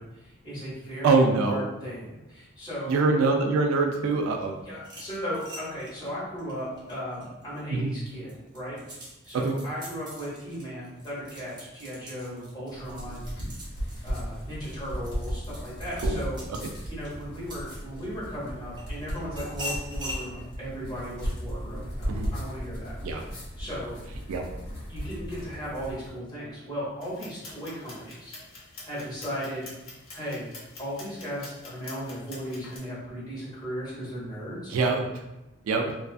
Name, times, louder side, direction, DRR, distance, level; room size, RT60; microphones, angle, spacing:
voice 1, 0.0-3.0 4.6-8.7 9.2-13.3 14.0-16.4 16.9-23.0 23.6-24.0 24.9-28.3 28.8-29.6 30.1-30.5 30.8-34.7, equal, 20° left, -9 dB, 1.1 m, -36 dB
voice 2, 1.0-1.6 2.9-4.5 7.7-7.9 9.3-9.6 16.0-16.2 22.1-22.3 23.0-23.2 24.3-24.4 34.7-35.0 35.7-35.9, right 3 dB, 75° right, 3 dB, 0.3 m, -24 dB
sound 1, 4.8-7.6 8.1-18.2 18.8-20.3, left 1 dB, 20° right, 0.6 m, -42 dB
sound 2, 12.7-26.1, equal, 60° left, 1.1 m, -36 dB
sound 3, 27.0-32.8, left 2 dB, 75° left, 0.8 m, -46 dB
2.4 x 2.3 x 2.4 m, 0.97 s
head